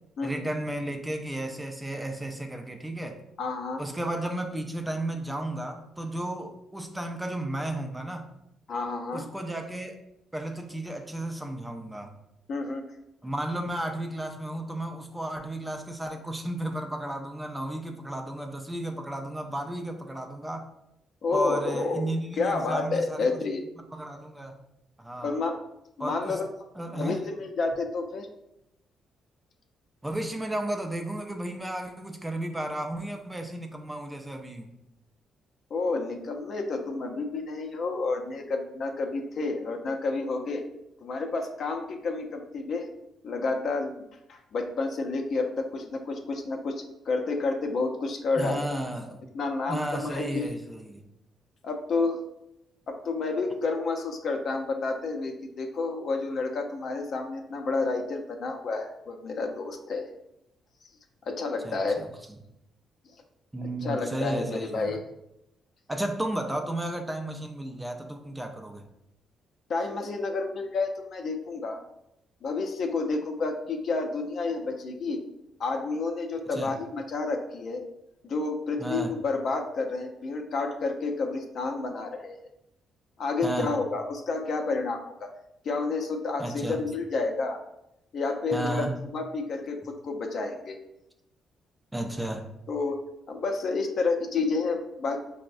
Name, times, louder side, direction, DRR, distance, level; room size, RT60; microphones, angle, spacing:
voice 1, 0.2-3.2 3.8-8.3 9.1-9.9 10.3-12.1 13.2-20.7 21.3-23.4 23.9-24.5 25.0-25.3 26.0-26.4 26.8-27.2 30.0-34.7 48.4-49.2 49.7-51.0 61.6-62.1 63.5-65.0 65.9-68.8 76.5-76.7 78.8-79.1 83.4-83.7 86.4-86.8 88.5-89.0 91.9-92.5, right 1 dB, 10° right, 4 dB, 0.4 m, -33 dB
voice 2, 3.4-3.8 8.7-9.3 12.5-12.8 21.2-22.1 22.4-23.6 25.2-25.6 26.0-26.5 26.9-28.3 35.7-40.6 41.0-42.9 43.2-43.9 44.3-48.7 49.3-50.5 51.6-52.2 52.9-60.0 61.3-62.0 63.8-65.0 69.7-71.8 72.4-75.2 75.6-77.8 78.2-82.4 83.2-85.3 85.6-87.6 88.1-90.8 92.7-93.0 93.3-95.2, left 3 dB, 60° left, 3 dB, 0.4 m, -30 dB
4.4 x 2.0 x 2.5 m, 0.84 s
cardioid pair, 90°, 0 cm